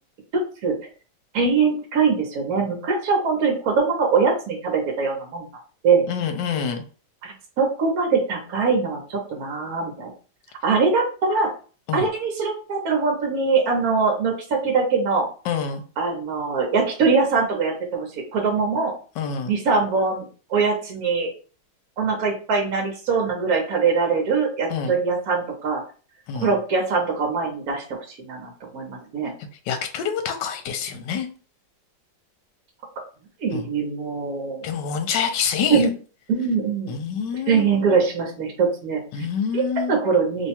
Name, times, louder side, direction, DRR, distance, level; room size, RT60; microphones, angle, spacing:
voice 1, 0.3-0.8 1.3-5.5 5.8-6.0 7.2-10.1 10.6-11.5 11.9-15.3 16.0-18.9 19.4-21.3 22.0-25.8 26.4-29.3 33.4-34.6 35.7-35.9 36.3-37.0 37.3-39.0 39.5-39.6 39.9-40.5, right 5 dB, 60° right, 1 dB, 1.2 m, -22 dB
voice 2, 6.1-6.8 11.9-12.1 15.5-15.8 19.2-19.5 24.7-24.9 26.3-26.5 29.7-31.3 33.5-33.7 34.6-35.8 36.9-37.9 39.1-39.9, left 7 dB, 75° left, 6 dB, 1.2 m, -26 dB
3.1 x 2.2 x 4.2 m, 0.38 s
omnidirectional pair, 2.0 m